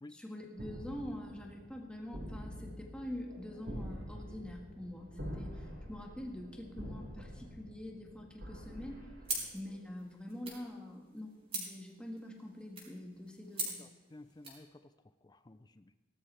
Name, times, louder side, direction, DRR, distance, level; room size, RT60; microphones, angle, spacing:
voice 1, 0.1-9.0 9.5-13.8, left 1 dB, 5° left, 0 dB, 1.6 m, -45 dB
sound 1, 0.5-9.8, equal, 70° right, 4.8 m, -46 dB
sound 2, 9.2-14.6, right 3 dB, 30° right, 5.2 m, -44 dB
voice 2, 13.8-14.9 15.2-15.9, left 2 dB, 20° left, 12 dB, 0.4 m, -54 dB
18.5 x 13.0 x 3.3 m, 1.2 s
head